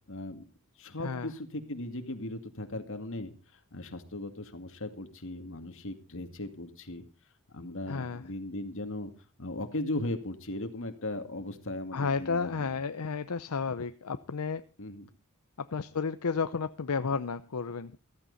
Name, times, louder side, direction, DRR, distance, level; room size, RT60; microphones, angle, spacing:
voice 1, 0.1-0.4 0.8-3.3 3.7-7.0 7.5-9.1 9.4-12.8 14.8-15.1, left 1 dB, 60° left, 7 dB, 2.2 m, -37 dB
voice 2, 7.9-8.2 11.9-14.6 15.6-17.9, left 5 dB, 80° left, 11 dB, 0.7 m, -32 dB
15.0 x 14.5 x 4.1 m, 0.35 s
head